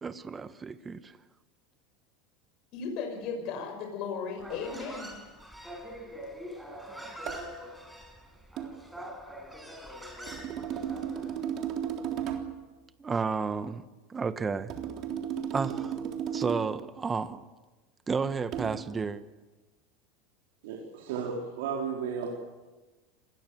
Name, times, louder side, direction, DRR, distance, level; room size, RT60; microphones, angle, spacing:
voice 1, 0.0-1.2 9.0-9.1 13.0-14.7 15.5-16.0 16.3-17.4 18.1-19.2, right 5 dB, 20° right, 12 dB, 1.4 m, -32 dB
voice 2, 2.7-5.1, left 5 dB, 55° left, 3 dB, 5.9 m, -36 dB
Human voice, 4.4-11.4, equal, 5° right, 6.3 m, -44 dB
sound 1, 7.3-7.5 8.6-8.8 10.3-12.6 14.7-16.8 18.5-18.8, right 9 dB, 50° right, 3.6 m, -34 dB
voice 3, 20.6-22.3, right 6 dB, 75° right, -1 dB, 4.3 m, -34 dB
26.5 x 20.5 x 7.9 m, 1.2 s
supercardioid pair, 105°, 0 cm